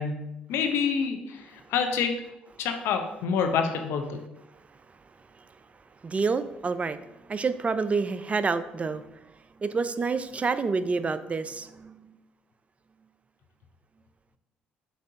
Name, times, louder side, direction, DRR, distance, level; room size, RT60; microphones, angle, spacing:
voice 1, 0.0-2.1 2.6-4.2, left 6 dB, 70° left, 5 dB, 0.6 m, -27 dB
voice 2, 6.0-7.0 7.3-9.2 9.6-12.2, right 4 dB, 30° right, 12 dB, 0.3 m, -28 dB
7.1 x 2.6 x 2.6 m, 0.92 s
hypercardioid pair, 55°, 4 cm